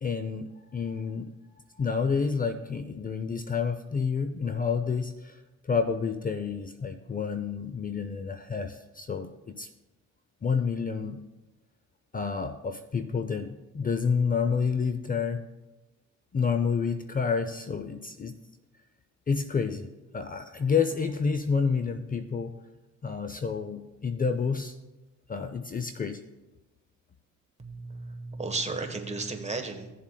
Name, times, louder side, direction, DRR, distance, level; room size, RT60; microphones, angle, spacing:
voice 1, 0.0-1.3 1.7-9.7 10.4-11.2 12.1-15.4 16.3-18.3 19.3-22.5 23.0-24.7 25.3-26.2, left 5 dB, 30° left, 9 dB, 0.6 m, -29 dB
voice 2, 27.6-29.9, right 3 dB, 20° right, 5 dB, 1.2 m, -34 dB
15.5 x 7.3 x 2.3 m, 1.0 s
cardioid pair, 90°, 30 cm